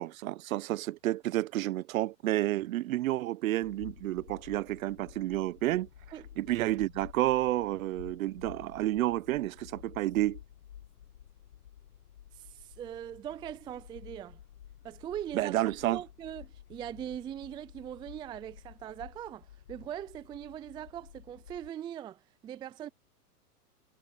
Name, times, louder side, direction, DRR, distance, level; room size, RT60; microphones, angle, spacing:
voice 1, 0.0-5.9 6.4-10.4 15.3-16.0, right 15 dB, 55° right, 1.3 m, -30 dB
sound 1, 3.6-21.7, left 10 dB, 70° left, 7.9 m, -52 dB
voice 2, 12.3-14.4 14.8-15.6 15.9-22.9, right 10 dB, 10° right, 0.5 m, -41 dB
hypercardioid pair, 115°, 48 cm